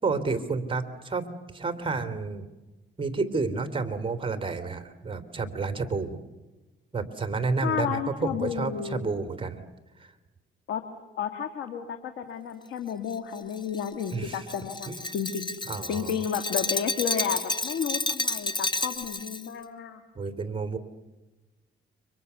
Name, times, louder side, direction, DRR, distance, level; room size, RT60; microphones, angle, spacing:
voice 1, 0.0-2.5 3.0-6.2 6.9-9.6 10.0-10.1 14.1-14.5 14.9-15.0 15.7-16.2 20.1-20.8, right 4 dB, 25° right, 9 dB, 3.1 m, -30 dB
voice 2, 7.6-9.0 10.7-10.8 11.2-15.6 15.9-20.0, left 7 dB, 80° left, 7 dB, 2.2 m, -32 dB
Glass, 13.1-19.5, left 2 dB, 20° left, 1.6 m, -31 dB
29.5 x 25.0 x 6.9 m, 1.1 s
cardioid pair, 90°, 20 cm